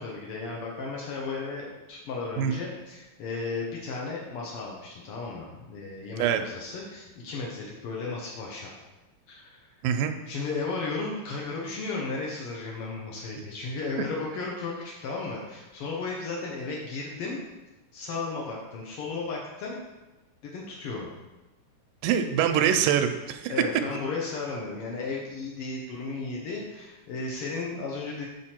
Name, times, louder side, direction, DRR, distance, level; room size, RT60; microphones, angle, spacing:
voice 1, 0.0-8.7 9.3-9.7 10.3-17.4 17.9-19.8 20.4-21.1 23.5-28.3, left 3 dB, 75° left, -3 dB, 1.3 m, -34 dB
voice 2, 22.0-23.5, right 8 dB, 85° right, 6 dB, 2.1 m, -24 dB
7.4 x 4.9 x 4.4 m, 1.1 s
omnidirectional pair, 3.8 m